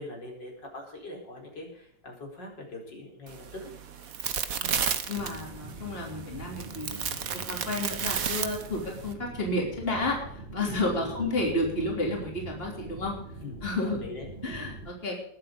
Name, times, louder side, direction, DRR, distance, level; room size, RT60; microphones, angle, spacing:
voice 1, 0.0-3.7 10.6-11.3 13.4-13.6 14.0-14.7, left 2 dB, 75° left, -1 dB, 5.2 m, -42 dB
sound 1, 3.3-9.1, right 7 dB, 50° right, 1.5 m, -33 dB
voice 2, 5.1-13.1 13.6-14.1 14.4-15.2, left 2 dB, 30° left, 0 dB, 3.7 m, -31 dB
sound 2, 5.2-14.9, right 2 dB, 35° right, 3.1 m, -43 dB
20.5 x 8.4 x 5.2 m, 0.69 s
omnidirectional pair, 2.0 m